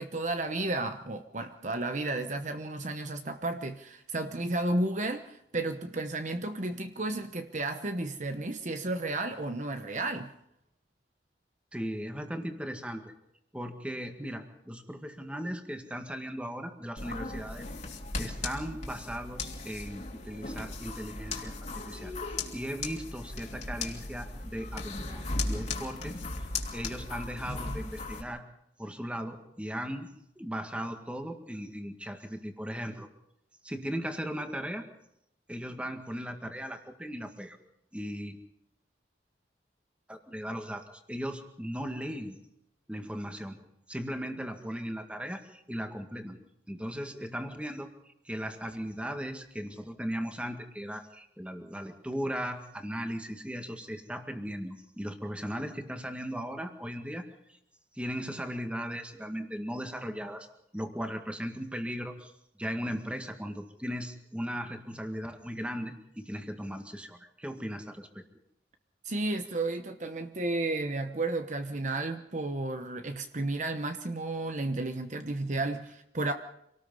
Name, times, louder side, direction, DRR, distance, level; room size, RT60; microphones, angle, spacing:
voice 1, 0.0-10.3 69.0-76.3, right 2 dB, 45° right, 7 dB, 1.0 m, -32 dB
voice 2, 11.7-13.1 13.5-17.7 18.2-22.1 22.5-26.2 26.7-28.4 28.8-33.1 33.6-34.9 35.5-37.6 37.9-38.4 40.1-42.4 42.9-43.6 43.9-46.4 46.7-47.9 48.2-57.2 57.5-57.6 57.9-60.5 60.7-62.3 62.6-68.2, equal, 5° right, 5 dB, 1.9 m, -37 dB
sound 1, 17.0-28.2, left 3 dB, 40° left, 2.8 m, -37 dB
26.5 x 18.5 x 5.5 m, 0.79 s
head